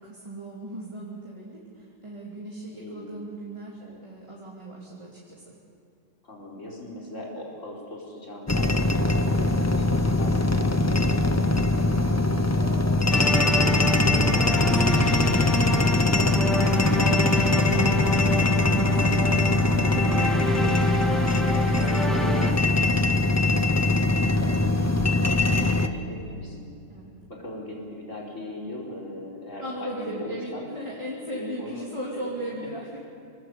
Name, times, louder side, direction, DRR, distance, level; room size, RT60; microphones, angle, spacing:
voice 1, 0.0-5.5 11.7-12.9 13.2-21.0 21.5-23.2 26.9-27.1 29.6-33.0, right 1 dB, 20° right, -5 dB, 2.9 m, -39 dB
voice 2, 2.8-3.2 3.8-4.0 6.2-8.7 9.1-10.8 11.1-11.2 15.6-16.3 22.1-22.4 24.4-26.7 27.3-30.6 31.3-32.3, left 1 dB, 50° left, -3 dB, 5.1 m, -40 dB
sound 1, 8.5-25.9, left 2 dB, 15° left, 0.5 m, -22 dB
sound 2, 13.1-22.5, equal, ahead, 1.8 m, -29 dB
26.5 x 20.0 x 8.3 m, 2.5 s
omnidirectional pair, 1.6 m